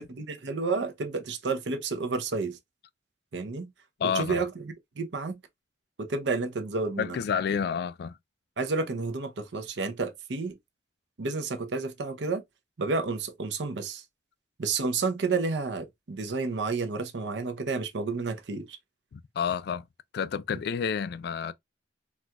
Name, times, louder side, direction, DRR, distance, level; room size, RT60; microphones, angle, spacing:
voice 1, 0.0-2.6 3.3-3.7 4.1-4.5 5.0-5.4 6.0-7.2 8.6-10.6 11.2-12.4 12.8-14.0 14.6-18.8, right 4 dB, 85° right, 0.6 m, -30 dB
voice 2, 4.0-4.4 7.0-8.2 19.1-19.9 20.1-21.5, left 7 dB, 65° left, 0.3 m, -29 dB
4.2 x 2.3 x 2.2 m
head